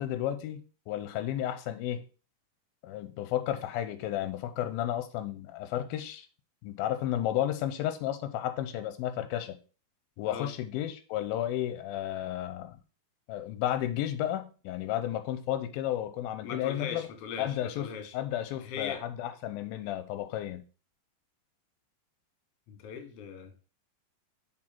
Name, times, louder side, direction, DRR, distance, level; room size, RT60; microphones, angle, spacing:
voice 1, 0.0-2.0 2.8-6.3 6.6-9.6 10.2-12.8 13.3-17.1 17.4-17.9 18.1-20.6, left 12 dB, 90° left, 2.5 m, -32 dB
voice 2, 16.4-18.1 18.6-19.0 22.7-23.6, left 7 dB, 60° left, 1.8 m, -39 dB
6.2 x 4.5 x 4.4 m
omnidirectional pair, 4.2 m